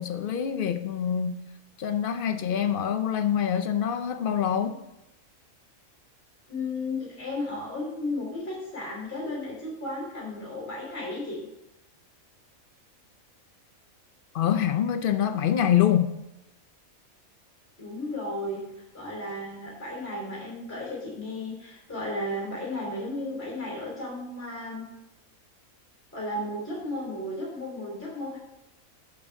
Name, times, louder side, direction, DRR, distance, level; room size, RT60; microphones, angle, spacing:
voice 1, 0.0-1.4 1.8-4.8 14.3-16.1, left 9 dB, 65° left, 8 dB, 0.5 m, -25 dB
voice 2, 6.5-11.4 17.8-18.6 18.9-24.8 26.1-28.4, left 1 dB, 10° left, -5 dB, 3.1 m, -34 dB
8.5 x 7.2 x 3.5 m, 0.90 s
omnidirectional pair, 1.5 m